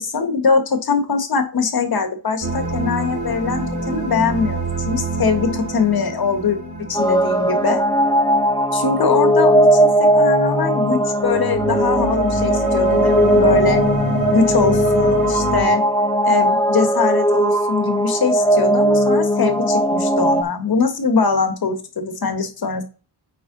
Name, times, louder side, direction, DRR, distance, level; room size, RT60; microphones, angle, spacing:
voice 1, 0.0-6.6 6.9-7.8 8.7-13.8 14.3-15.8 16.2-22.8, left 5 dB, 60° left, 6 dB, 1.8 m, -22 dB
sound 1, 2.4-8.4 11.2-15.6, right 2 dB, 60° right, 3.8 m, -26 dB
sound 2, 6.9-20.4, equal, 10° left, 0.8 m, -18 dB
8.6 x 4.7 x 4.0 m, 0.33 s
wide cardioid pair, 150°, 41 cm